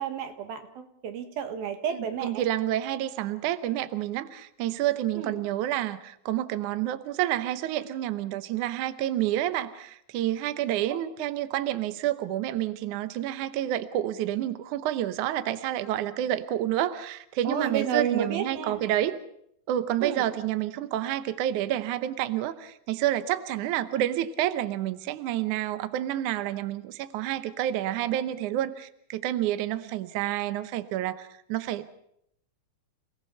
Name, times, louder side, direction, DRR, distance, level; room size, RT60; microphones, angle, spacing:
voice 1, 0.0-2.4 5.1-5.4 17.4-18.8 20.0-20.2, right 8 dB, 85° right, 7 dB, 3.7 m, -31 dB
voice 2, 1.9-19.2 19.7-31.9, right 12 dB, 70° right, 12 dB, 2.1 m, -29 dB
29.0 x 18.0 x 5.8 m, 0.73 s
omnidirectional pair, 4.1 m